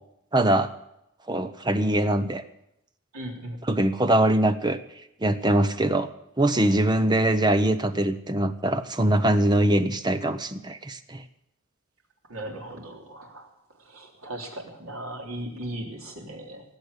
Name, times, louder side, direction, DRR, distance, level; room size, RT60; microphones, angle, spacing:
voice 1, 0.3-0.7 1.3-2.4 3.6-4.8 5.2-6.1 6.4-11.2, right 1 dB, 20° right, 11 dB, 0.8 m, -22 dB
voice 2, 3.1-3.6 12.3-13.5 13.9-16.6, right 1 dB, 85° right, 1 dB, 3.3 m, -37 dB
18.5 x 7.9 x 8.1 m, 0.80 s
head